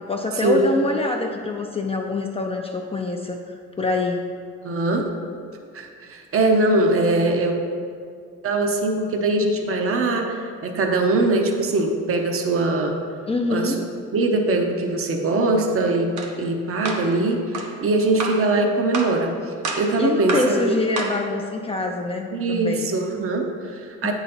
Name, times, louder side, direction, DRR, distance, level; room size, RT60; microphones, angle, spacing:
voice 1, 0.0-4.2 13.3-13.9 20.0-22.9 24.0-24.1, left 2 dB, 20° left, 1 dB, 0.4 m, -25 dB
voice 2, 4.6-5.1 5.7-7.5 8.4-13.0 13.5-13.7 14.1-20.7 22.3-24.1, right 2 dB, 45° right, 4 dB, 0.8 m, -22 dB
sound 1, 16.2-16.3 16.9-17.1 17.5-17.7 18.2-18.5 18.9-19.2 19.6-19.9 20.3-20.6 21.0-21.2, right 3 dB, 75° right, 0.9 m, -28 dB
8.5 x 4.0 x 4.2 m, 2.2 s
cardioid pair, 90°, 30 cm